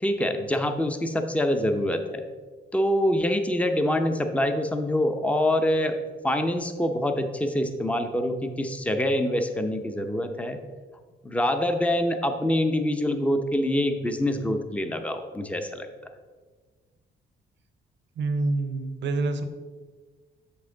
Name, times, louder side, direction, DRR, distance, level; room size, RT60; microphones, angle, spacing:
voice 1, 0.0-2.2 2.7-6.0 6.2-10.6 11.2-15.9, left 1 dB, 5° left, 6 dB, 0.6 m, -25 dB
voice 2, 18.2-19.4, right 3 dB, 65° right, 9 dB, 0.8 m, -27 dB
7.0 x 5.5 x 3.9 m, 1.4 s
cardioid pair, 90°, 20 cm